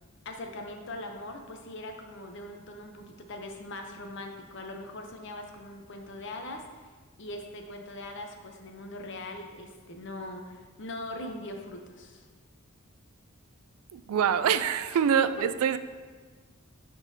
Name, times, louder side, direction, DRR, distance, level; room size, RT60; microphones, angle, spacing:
voice 1, 0.2-6.9 7.2-12.3 15.4-15.5, left 1 dB, 55° left, 4 dB, 0.6 m, -41 dB
voice 2, 13.9-15.8, right 8 dB, 75° right, 12 dB, 0.3 m, -25 dB
11.0 x 3.8 x 2.7 m, 1.5 s
head